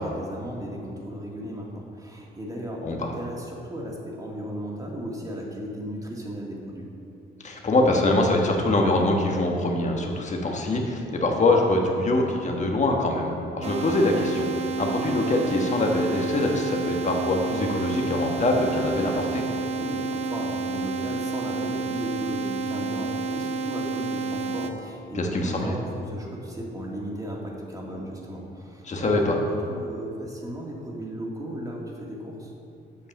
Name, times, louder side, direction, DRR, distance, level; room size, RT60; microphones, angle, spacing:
voice 1, 0.0-6.9 19.8-32.5, equal, 15° right, -2 dB, 2.1 m, -35 dB
voice 2, 7.4-19.4 25.1-25.7 28.8-29.4, left 2 dB, 35° left, 1 dB, 1.4 m, -24 dB
sound 1, 13.6-24.7, right 4 dB, 35° right, 0.8 m, -30 dB
8.3 x 5.6 x 7.2 m, 2.8 s
cardioid pair, 90°, 20 cm